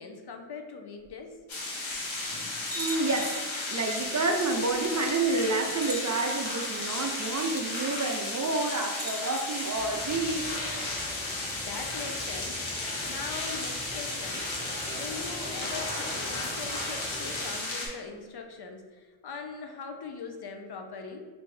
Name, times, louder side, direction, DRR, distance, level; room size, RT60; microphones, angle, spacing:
voice 1, 0.0-1.3 11.6-14.4 14.9-21.3, left 4 dB, 55° left, 4 dB, 0.5 m, -41 dB
sound 1, 1.1-1.2 1.9-2.0 2.7-3.6 4.7-4.8 5.7-6.6 8.9-9.8, equal, 10° right, 0.7 m, -40 dB
sound 2, 1.5-17.9, left 2 dB, 80° left, 0.9 m, -34 dB
voice 2, 2.7-3.4 3.7-10.5, right 3 dB, 40° right, 3 dB, 0.4 m, -29 dB
sound 3, 9.7-17.5, equal, 15° left, 1.0 m, -43 dB
3.3 x 2.6 x 3.2 m, 1.4 s
wide cardioid pair, 45°, 47 cm